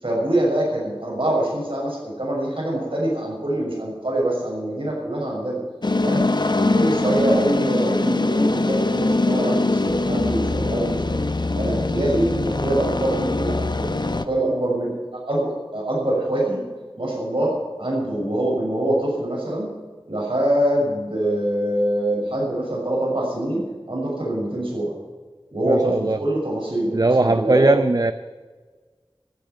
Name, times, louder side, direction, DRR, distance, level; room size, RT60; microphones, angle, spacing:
voice 1, 0.0-5.6 6.0-6.2 6.5-11.2 11.6-14.9 15.3-16.6 17.0-17.5 17.8-19.7 20.1-23.6 23.9-24.9 25.5-27.7, right 1 dB, 65° right, -3 dB, 6.5 m, -24 dB
sound 1, 5.8-14.2, left 2 dB, 50° left, 0.8 m, -22 dB
voice 2, 25.7-26.2 26.9-28.1, right 2 dB, 40° right, 11 dB, 0.5 m, -19 dB
14.0 x 8.9 x 9.7 m, 1.4 s
wide cardioid pair, 40°, 10 cm